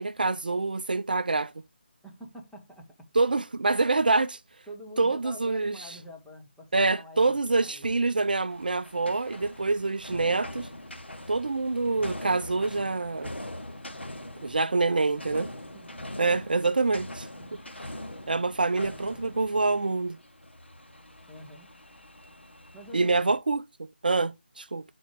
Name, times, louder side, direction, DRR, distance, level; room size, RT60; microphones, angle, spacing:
voice 1, 0.0-1.5 3.1-4.4 5.0-6.0 6.7-10.7 11.3-13.3 14.4-15.5 16.2-17.3 18.3-20.2 22.9-24.8, right 3 dB, 55° right, 0.4 m, -26 dB
voice 2, 2.0-3.1 4.7-8.1 14.8-15.3 15.6-16.1 17.4-17.6 18.7-19.3 21.3-21.7 22.7-23.3, equal, ahead, 0.7 m, -47 dB
sound 1, 8.5-23.4, left 1 dB, 85° left, 1.1 m, -43 dB
7.0 x 4.3 x 3.2 m
figure-of-eight pair, 155°, 6 cm